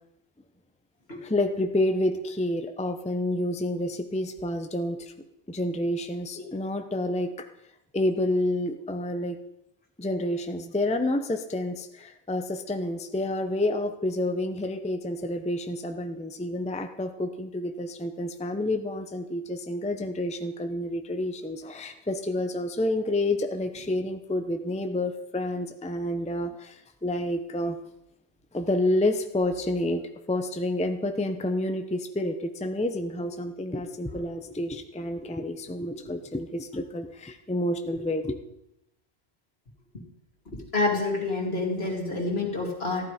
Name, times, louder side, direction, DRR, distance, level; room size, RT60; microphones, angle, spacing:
voice 1, 1.2-5.1 5.5-7.5 7.9-9.4 10.0-27.8 28.5-30.0 30.3-38.4, left 1 dB, 5° left, 6 dB, 0.7 m, -29 dB
voice 2, 40.7-43.1, left 3 dB, 65° left, -1 dB, 3.1 m, -27 dB
14.5 x 12.0 x 5.0 m, 0.83 s
omnidirectional pair, 1.1 m